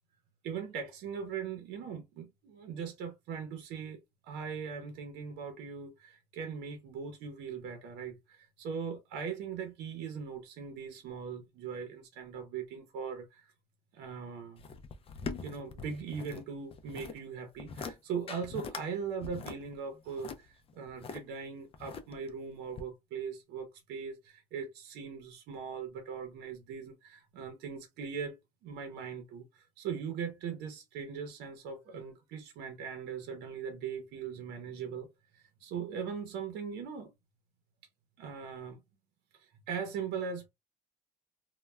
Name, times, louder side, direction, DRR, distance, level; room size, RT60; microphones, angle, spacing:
voice 1, 0.4-13.5 13.9-14.7 15.4-35.1 35.3-37.1 38.2-38.8 39.4-40.5, right 6 dB, 85° right, 0.7 m, -40 dB
sound 1, 14.6-16.4 16.7-17.2 17.6-17.9 18.3-18.9 19.2-21.2 21.7-22.3 22.8-22.9, left 5 dB, 35° left, 0.4 m, -42 dB
2.2 x 2.2 x 3.1 m
cardioid pair, 110°, 17 cm